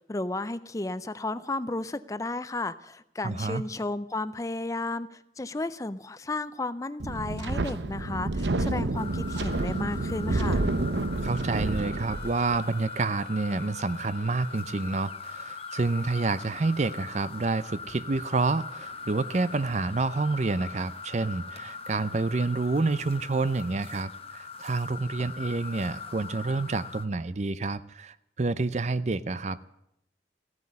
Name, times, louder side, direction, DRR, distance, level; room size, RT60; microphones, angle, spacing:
voice 1, 0.0-10.6, left 2 dB, 20° left, 14 dB, 0.5 m, -33 dB
voice 2, 3.2-3.6 11.2-29.6, right 3 dB, 40° right, 16 dB, 0.5 m, -28 dB
Wind, 7.0-12.6, right 2 dB, 85° right, 0.9 m, -29 dB
sound 1, 8.9-27.1, left 5 dB, 35° left, 1.0 m, -41 dB
Wind instrument woodwind instrument, 11.1-14.9, left 2 dB, 55° right, 1.5 m, -50 dB
15.0 x 9.6 x 9.5 m, 0.82 s
head